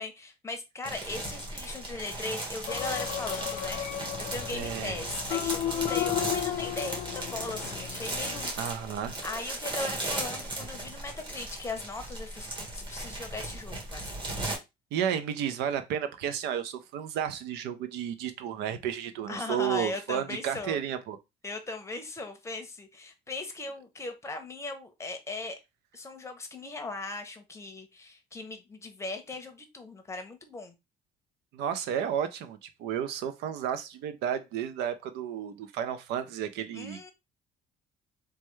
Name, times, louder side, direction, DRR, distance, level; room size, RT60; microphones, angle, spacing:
voice 1, 0.0-8.8 9.2-14.0 19.3-20.8 21.4-25.6 25.9-30.8 36.7-37.1, left 3 dB, 15° left, 0.7 m, -39 dB
sound 1, 0.8-14.6, right 1 dB, 30° right, 1.3 m, -37 dB
sound 2, 2.7-8.5, left 11 dB, 60° left, 0.4 m, -34 dB
voice 2, 4.5-5.0 8.6-9.2 14.9-21.2 31.5-37.1, right 9 dB, 85° right, 0.5 m, -32 dB
3.3 x 2.1 x 3.0 m
cardioid pair, 110°, 17 cm